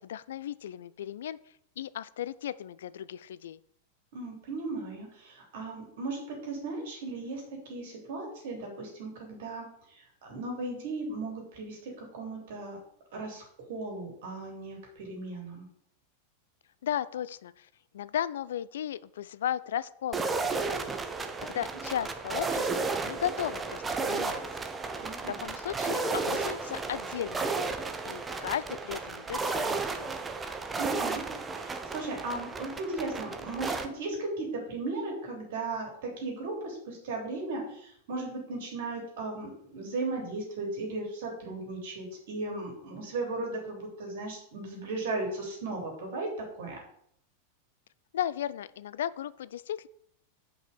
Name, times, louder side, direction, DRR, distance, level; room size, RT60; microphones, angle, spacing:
voice 1, 0.0-1.4 1.8-3.6 16.8-17.7 17.9-21.0 21.4-24.4 25.3-30.1 48.1-49.9, left 10 dB, 60° left, 18 dB, 0.3 m, -35 dB
voice 2, 4.1-7.4 7.7-12.8 13.1-15.6 21.7-21.8 25.0-25.4 30.8-46.3 46.6-46.8, right 2 dB, 55° right, 0 dB, 3.3 m, -36 dB
sound 1, 20.1-33.9, right 4 dB, 15° right, 0.8 m, -33 dB
5.8 x 5.4 x 6.8 m, 0.68 s
figure-of-eight pair, 90°, 0 cm